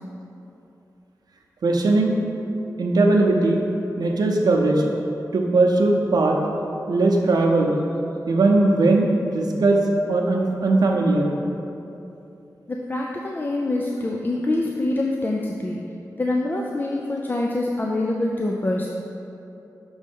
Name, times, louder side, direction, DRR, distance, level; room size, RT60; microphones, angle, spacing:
voice 1, 1.6-2.1 2.8-3.6 4.0-4.8 5.3-6.4 6.9-7.7 8.3-9.8 10.1-11.3, right 2 dB, 75° right, 0 dB, 0.7 m, -19 dB
voice 2, 12.7-15.8 16.2-18.9, left 2 dB, 30° left, -1 dB, 0.4 m, -25 dB
6.2 x 3.2 x 5.3 m, 2.9 s
wide cardioid pair, 110°, 7 cm